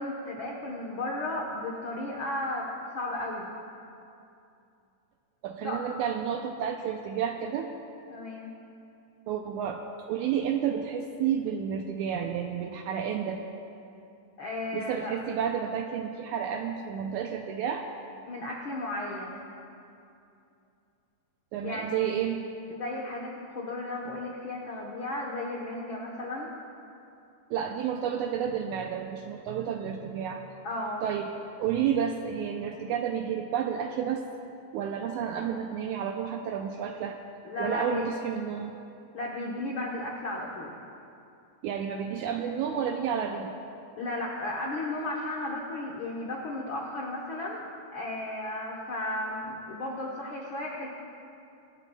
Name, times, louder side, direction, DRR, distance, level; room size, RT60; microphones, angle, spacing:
voice 1, 0.0-2.7 2.9-3.5 5.6-5.8 8.1-8.5 14.4-15.2 18.3-19.4 21.6-22.1 22.7-26.5 30.6-31.0 37.4-38.1 39.1-40.7 44.0-50.9, left 2 dB, 75° left, -2 dB, 1.1 m, -34 dB
voice 2, 5.4-7.7 9.3-9.8 10.1-13.4 14.7-17.8 21.5-22.4 27.5-30.4 31.0-31.3 31.6-34.2 34.7-37.2 37.6-38.8 41.6-43.6, right 8 dB, 80° right, 3 dB, 1.8 m, -31 dB
24.0 x 12.0 x 2.3 m, 2.7 s
omnidirectional pair, 3.9 m